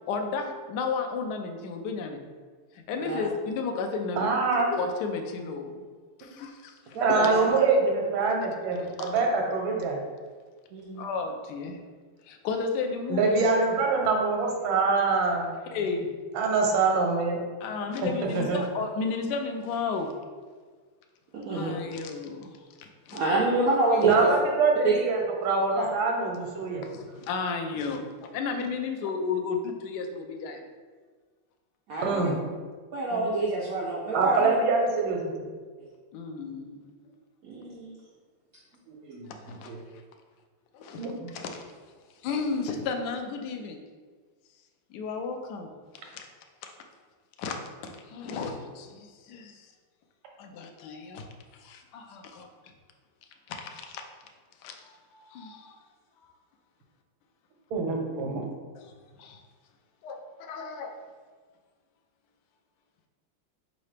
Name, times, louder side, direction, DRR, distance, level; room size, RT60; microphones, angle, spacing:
voice 1, 0.1-2.2 2.9-4.4 4.7-5.8 6.4-6.5 7.2-7.3 8.8-9.3 11.0-11.8 12.3-13.5 15.7-16.1 17.6-20.1 21.5-22.5 23.1-23.2 26.9-28.0 28.3-30.6 33.1-33.3 36.1-36.8 39.5-39.7 40.8-41.0 41.3-41.6 42.2-43.8 44.9-45.7 47.4-48.9 49.3-49.5 50.4-51.2 51.7-52.5 54.6-54.7 55.3-55.6 59.2-59.3 60.0-60.9, left 4 dB, 70° left, 4 dB, 1.0 m, -32 dB
voice 2, 4.2-4.7 7.0-10.0 13.1-15.5 16.3-17.4 18.0-18.6 24.0-26.8 32.0-32.3 34.1-35.3 41.0-41.3 57.7-58.5, right 4 dB, 90° right, 1 dB, 1.6 m, -25 dB
voice 3, 6.9-7.5 10.7-11.1 21.3-21.7 23.1-24.3 24.8-24.9 25.8-25.9 31.9-32.4 32.9-34.5 37.4-37.9 38.9-39.3 39.7-39.8, right 3 dB, 70° right, -4 dB, 0.8 m, -27 dB
4.1 x 3.8 x 3.3 m, 1.5 s
omnidirectional pair, 2.2 m